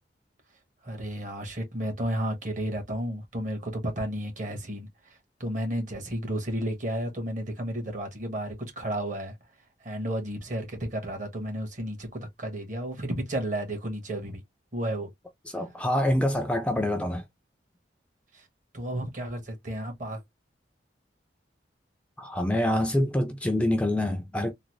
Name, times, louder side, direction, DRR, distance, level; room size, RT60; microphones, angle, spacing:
voice 1, 0.8-9.4 9.8-14.4 14.7-15.1 18.3-18.5 18.7-20.2, right 1 dB, 45° right, 1.3 m, -32 dB
voice 2, 15.5-17.2 22.2-24.5, left 1 dB, 5° left, 0.4 m, -26 dB
3.8 x 2.0 x 3.0 m
head